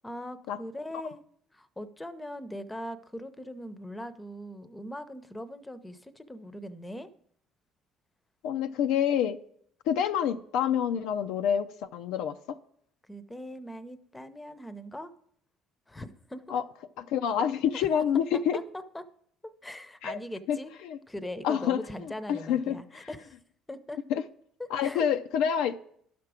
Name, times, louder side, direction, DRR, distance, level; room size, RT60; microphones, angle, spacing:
voice 1, 0.0-1.2 1.5-7.1 13.1-15.1 15.9-16.6 18.5-18.6 18.9-19.0 19.6-20.7 21.1-23.4 23.7-24.0 24.8-25.1, left 1 dB, 10° left, 0.7 m, -40 dB
voice 2, 8.4-9.4 9.9-12.6 16.5-16.6 17.0-18.6 20.0-20.2 20.5-21.0 21.4-23.1 24.1-24.2 24.7-25.8, left 8 dB, 80° left, 0.4 m, -28 dB
11.5 x 6.0 x 4.9 m
supercardioid pair, 90°, 0 cm